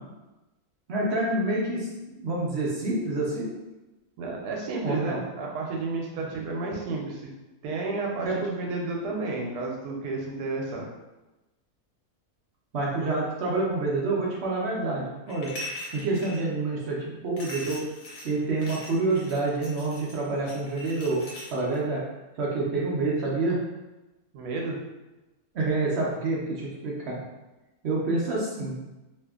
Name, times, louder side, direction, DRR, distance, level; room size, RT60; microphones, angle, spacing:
voice 1, 0.9-3.5 4.8-5.2 8.2-8.5 12.7-15.5 15.9-17.8 18.2-21.2 21.5-22.0 22.4-23.6 25.5-27.2 27.8-28.8, right 2 dB, 65° right, -5 dB, 0.7 m, -27 dB
voice 2, 4.2-7.3 7.6-10.9 24.3-24.8, right 3 dB, 85° right, -1 dB, 1.1 m, -31 dB
sound 1, 15.3-16.4 17.4-21.8, left 1 dB, 65° left, 1.1 m, -41 dB
2.7 x 2.5 x 2.3 m, 1.0 s
omnidirectional pair, 1.6 m